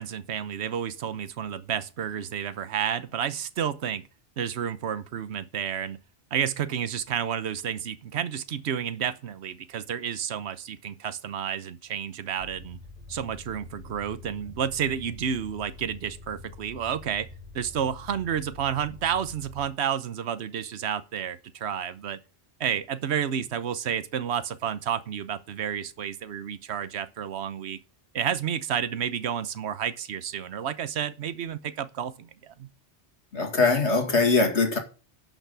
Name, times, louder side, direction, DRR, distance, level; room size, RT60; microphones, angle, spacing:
voice 1, 0.0-4.0 4.4-6.0 6.3-12.8 13.1-17.3 17.5-22.2 22.6-27.8 28.1-32.7, right 8 dB, 70° right, 1.1 m, -30 dB
sound 1, 12.4-19.7, left 2 dB, 30° right, 3.8 m, -46 dB
voice 2, 33.3-34.8, left 3 dB, 75° left, 2.6 m, -22 dB
11.0 x 6.0 x 6.9 m
omnidirectional pair, 1.2 m